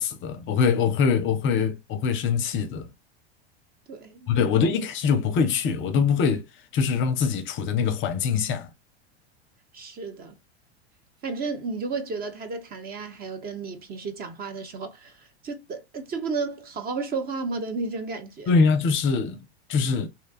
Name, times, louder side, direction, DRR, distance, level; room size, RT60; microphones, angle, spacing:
voice 1, 0.0-2.9 4.3-6.5 6.7-8.7 18.5-19.4 19.7-20.1, left 5 dB, 35° left, 0.5 m, -23 dB
voice 2, 3.9-4.4 9.7-10.4 11.2-18.6, right 4 dB, 30° right, 0.5 m, -33 dB
2.8 x 2.2 x 2.4 m
hypercardioid pair, 95°, 33 cm